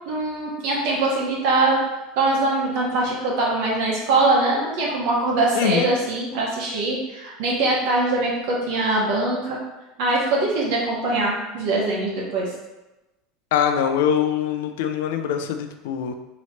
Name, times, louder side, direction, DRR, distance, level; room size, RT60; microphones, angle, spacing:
voice 1, 0.1-1.8 2.2-9.6 10.0-12.5, right 2 dB, 70° right, -4 dB, 1.1 m, -22 dB
voice 2, 5.6-5.9 13.5-16.1, left 8 dB, 80° left, 7 dB, 0.4 m, -23 dB
3.2 x 3.1 x 4.1 m, 1.0 s
supercardioid pair, 130°, 0 cm